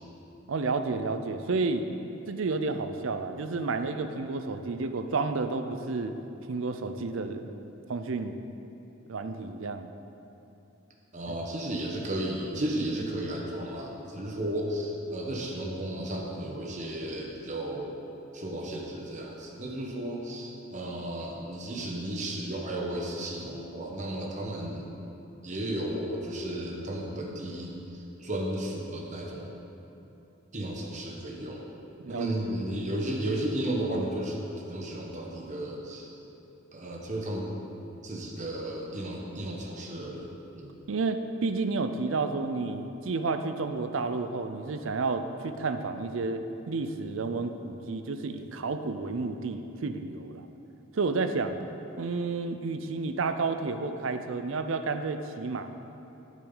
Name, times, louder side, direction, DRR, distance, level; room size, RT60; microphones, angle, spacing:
voice 1, 0.5-1.9 2.3-6.1 6.5-7.5 7.9-8.4 9.1-9.9 11.3-11.4 32.0-32.5 40.9-50.5 50.9-51.6 52.0-55.7, right 3 dB, 70° right, 9 dB, 0.5 m, -31 dB
voice 2, 11.1-18.0 18.3-24.9 25.4-29.6 30.5-31.7 32.1-34.4 34.7-36.1 36.7-37.5 38.0-40.7, right 1 dB, 35° right, -1 dB, 1.1 m, -34 dB
12.5 x 7.4 x 3.9 m, 2.9 s
head